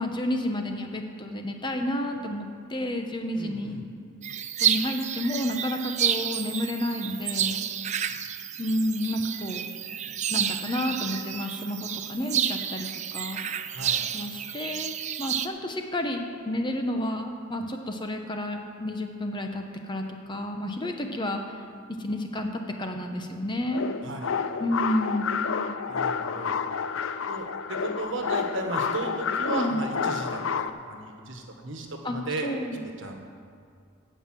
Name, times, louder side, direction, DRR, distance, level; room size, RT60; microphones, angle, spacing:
voice 1, 0.0-3.7 4.6-7.6 8.6-9.7 10.3-13.4 14.1-21.6 22.0-23.9 24.6-25.3 29.5-29.8 32.0-32.2 32.4-32.8, left 1 dB, 20° left, 4 dB, 0.8 m, -30 dB
voice 2, 3.4-3.8 13.7-14.0 24.0-24.3 25.9-26.5 27.3-32.5 32.8-33.3, right 2 dB, 60° right, 2 dB, 1.5 m, -35 dB
sound 1, 4.2-15.5, right 9 dB, 35° right, 0.4 m, -30 dB
sound 2, 23.7-30.7, left 6 dB, 70° left, 0.5 m, -29 dB
16.5 x 5.6 x 7.5 m, 2.2 s
head